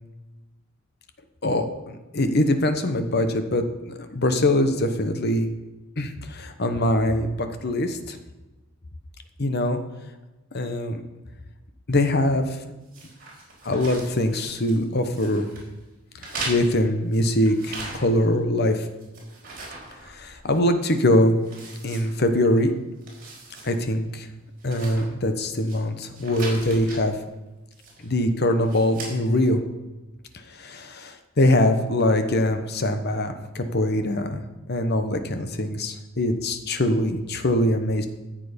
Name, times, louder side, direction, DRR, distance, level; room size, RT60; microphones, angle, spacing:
voice 1, 1.4-5.5 6.0-8.2 9.4-9.8 10.5-11.0 11.9-12.6 13.6-15.5 16.2-18.9 20.1-21.4 21.8-22.7 23.6-24.3 24.6-27.1 28.0-29.6 30.5-38.1, left 1 dB, 50° left, 8 dB, 1.0 m, -23 dB
sound 1, 12.9-14.8 15.1-15.7 16.2-18.3 18.7-20.6 20.9-21.0 21.4-22.6 22.9-23.7 24.1-24.2 24.6-25.8 26.1-27.0 27.7-28.2 28.6-29.1, right 3 dB, 45° right, 4.6 m, -39 dB
14.0 x 7.5 x 5.2 m, 1.1 s
head